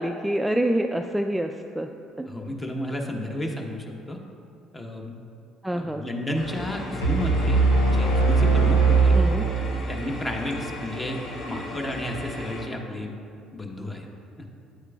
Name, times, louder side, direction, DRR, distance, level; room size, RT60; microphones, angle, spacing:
voice 1, 0.0-1.9 2.2-2.4 5.6-6.1 9.1-9.5, right 1 dB, 5° right, 4 dB, 0.3 m, -26 dB
voice 2, 2.3-4.2 4.7-5.1 5.7-9.2 9.9-11.2 11.4-13.2 13.5-14.1 14.4-14.5, left 1 dB, 20° left, 2 dB, 1.1 m, -32 dB
sound 1, 6.3-12.6, left 1 dB, 50° left, 1.2 m, -37 dB
sound 2, 7.0-10.1, right 4 dB, 85° left, 0.9 m, -20 dB
9.2 x 8.0 x 2.4 m, 2.5 s
hypercardioid pair, 55°, 0 cm